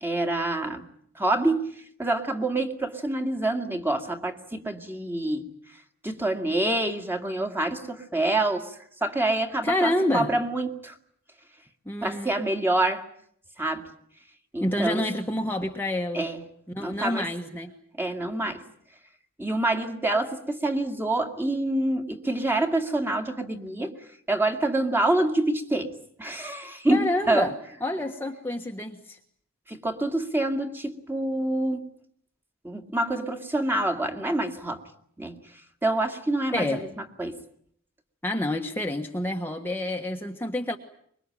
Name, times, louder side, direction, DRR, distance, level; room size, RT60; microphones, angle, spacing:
voice 1, 0.0-0.9 1.2-5.5 6.0-10.9 12.0-13.0 13.6-13.9 14.5-15.0 16.1-16.4 16.8-17.3 18.0-18.6 19.4-23.9 24.3-27.5 29.7-31.9 32.6-34.8 35.2-35.4 35.8-36.9 37.2-37.4, right 2 dB, 10° right, 5 dB, 2.1 m, -27 dB
voice 2, 9.6-10.3 11.9-12.3 14.6-16.2 16.7-17.7 26.9-27.5 27.8-29.2 36.5-36.8 38.2-40.8, left 1 dB, 10° left, 2 dB, 1.4 m, -28 dB
25.0 x 22.5 x 8.8 m, 0.67 s
head